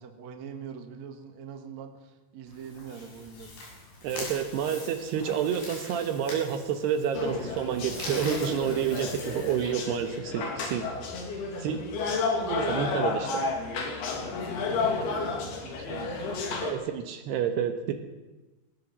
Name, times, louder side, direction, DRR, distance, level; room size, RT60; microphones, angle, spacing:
voice 1, 0.0-3.6 14.7-16.6, right 7 dB, 50° right, 5 dB, 2.5 m, -43 dB
sound 1, 2.5-10.2, left 2 dB, 80° left, 9.3 m, -43 dB
voice 2, 4.0-11.1 11.6-11.8 12.3-13.4 16.6-17.9, right 8 dB, 75° right, 6 dB, 3.0 m, -29 dB
sound 2, 7.1-16.7, left 4 dB, 65° left, 4.3 m, -31 dB
20.0 x 18.0 x 7.4 m, 1.1 s
omnidirectional pair, 5.1 m